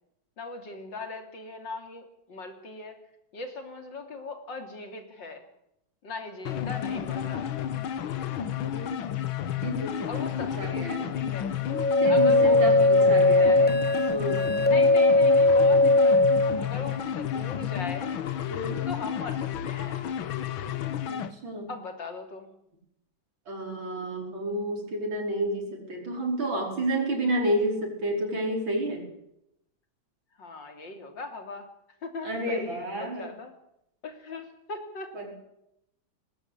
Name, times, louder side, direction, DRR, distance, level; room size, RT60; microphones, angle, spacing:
voice 1, 0.4-3.0 3.3-5.4 6.0-7.5 10.1-11.5 12.1-13.8 14.7-16.3 16.6-18.1 18.9-20.0 21.7-22.5 30.4-31.7 32.0-33.5 34.0-35.1, left 3 dB, 65° left, 6 dB, 3.8 m, -39 dB
sound 1, 6.5-21.3, left 10 dB, 80° left, 2.0 m, -31 dB
voice 2, 8.6-9.1 9.6-11.1 12.0-13.6 14.1-14.5 18.5-18.8 21.1-21.7 23.5-29.0 32.2-33.3 35.1-35.4, right 1 dB, 75° right, 2 dB, 5.9 m, -30 dB
sound 2, 11.7-16.6, left 2 dB, 10° left, 0.5 m, -20 dB
19.5 x 18.0 x 8.4 m, 0.79 s
omnidirectional pair, 2.2 m